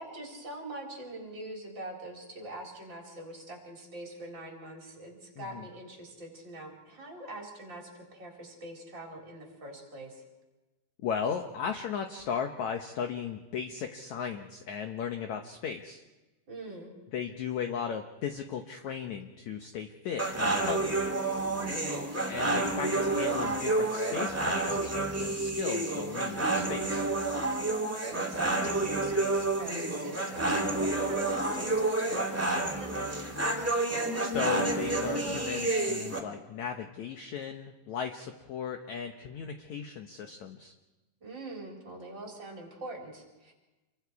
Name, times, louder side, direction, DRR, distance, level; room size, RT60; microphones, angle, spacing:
voice 1, 0.0-10.2 16.5-16.9 21.6-22.0 27.8-33.1 41.2-43.5, right 1 dB, 30° right, -1 dB, 4.7 m, -44 dB
voice 2, 11.0-16.0 17.1-21.0 22.3-27.1 34.2-40.7, left 7 dB, 70° left, 5 dB, 1.9 m, -36 dB
sound 1, 20.2-36.2, right 2 dB, 5° right, 1.3 m, -29 dB
28.0 x 23.5 x 4.7 m, 1.1 s
omnidirectional pair, 4.4 m